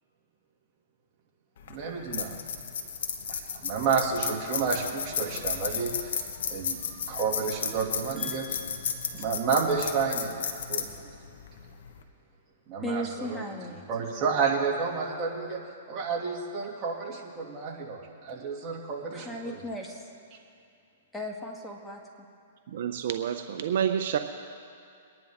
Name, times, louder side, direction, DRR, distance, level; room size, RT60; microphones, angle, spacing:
sound 1, 1.6-12.0, left 7 dB, 70° left, 1.3 m, -34 dB
voice 1, 1.7-2.4 3.3-6.1 6.5-6.8 7.1-8.6 9.1-11.1 12.7-13.4 13.9-15.6 15.9-19.5, right 5 dB, 30° right, -3 dB, 2.4 m, -30 dB
voice 2, 8.2-9.2 12.8-13.9 19.1-20.1 21.1-22.0, equal, 5° left, 0 dB, 1.4 m, -37 dB
voice 3, 22.7-24.2, right 9 dB, 60° right, 7 dB, 0.7 m, -28 dB
23.5 x 10.5 x 3.7 m, 2.5 s
hypercardioid pair, 140°, 0 cm